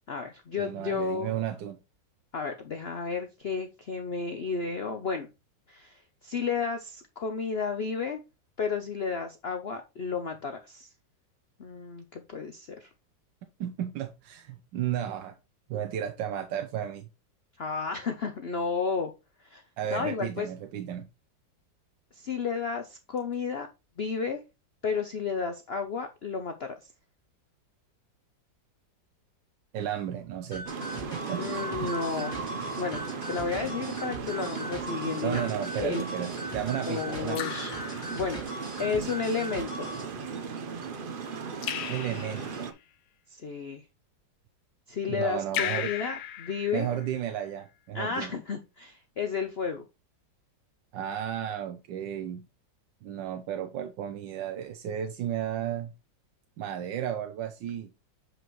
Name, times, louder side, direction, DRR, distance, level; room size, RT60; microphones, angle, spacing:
voice 1, 0.1-1.4 2.3-5.3 5.7-8.2 8.6-10.9 11.6-12.9 17.6-19.1 19.4-19.6 19.9-20.5 22.1-23.7 24.0-24.4 24.8-26.9 31.4-32.4 32.8-33.0 33.3-35.4 35.8-36.0 36.9-37.8 38.1-39.9 43.3-43.8 44.9-46.9 47.9-49.8, left 5 dB, 70° left, 6 dB, 0.6 m, -32 dB
voice 2, 0.6-1.8 13.6-15.3 15.7-17.1 19.8-21.1 29.7-30.7 31.3-31.4 31.8-31.9 35.2-37.5 41.9-42.7 45.1-45.9 46.7-48.4 50.9-52.5 53.0-55.9 56.6-57.9, right 10 dB, 85° right, 7 dB, 1.4 m, -33 dB
sound 1, 30.5-40.1, equal, 15° left, 3.2 m, -41 dB
sound 2, 30.7-42.7, right 5 dB, 50° right, 0.6 m, -36 dB
Raindrop / Drip, 35.6-36.0 37.3-38.7 41.6-42.7 45.5-47.3, left 10 dB, 90° left, 1.4 m, -36 dB
7.7 x 5.0 x 3.1 m, 0.26 s
omnidirectional pair, 2.0 m